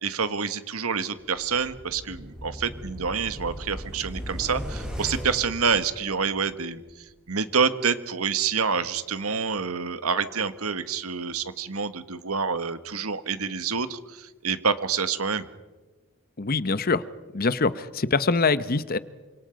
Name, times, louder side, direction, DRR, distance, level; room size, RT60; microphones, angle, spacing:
voice 1, 0.0-6.8 7.3-15.5, right 5 dB, 75° right, 12 dB, 1.5 m, -27 dB
sound 1, 1.3-6.5 6.9-7.0, equal, 5° right, 5.9 m, -37 dB
voice 2, 16.4-17.0 17.3-19.0, left 4 dB, 40° left, 15 dB, 0.9 m, -24 dB
28.0 x 26.0 x 5.2 m, 1.2 s
head